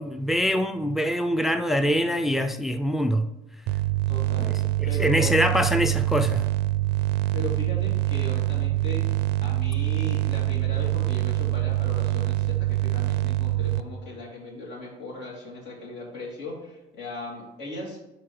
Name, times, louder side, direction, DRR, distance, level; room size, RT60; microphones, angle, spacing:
voice 1, 0.0-3.3 4.4-4.5 4.8-6.5, equal, ahead, 0.4 m, -24 dB
sound 1, 3.7-13.8, right 16 dB, 90° right, 0.4 m, -25 dB
voice 2, 4.1-5.4 7.3-9.2 9.4-18.0, left 1 dB, 80° left, 2.8 m, -37 dB
11.5 x 4.5 x 3.2 m
cardioid pair, 110°, 17 cm